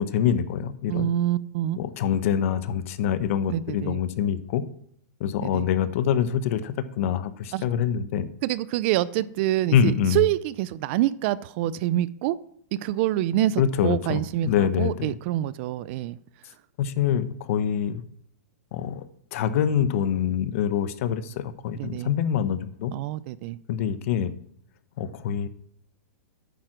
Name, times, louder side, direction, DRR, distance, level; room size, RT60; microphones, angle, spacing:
voice 1, 0.0-1.1 1.8-4.6 5.2-8.3 9.7-10.2 13.6-15.2 16.8-18.0 18.7-19.1 19.3-22.9 23.7-24.3 25.0-25.5, left 9 dB, 55° left, 13 dB, 1.0 m, -25 dB
voice 2, 0.9-1.8 3.5-4.0 5.4-5.7 7.5-7.6 8.4-12.4 12.7-16.2 21.8-22.1 22.9-23.6, right 14 dB, 45° right, 19 dB, 0.5 m, -26 dB
9.1 x 7.6 x 6.1 m, 0.67 s
hypercardioid pair, 140°, 9 cm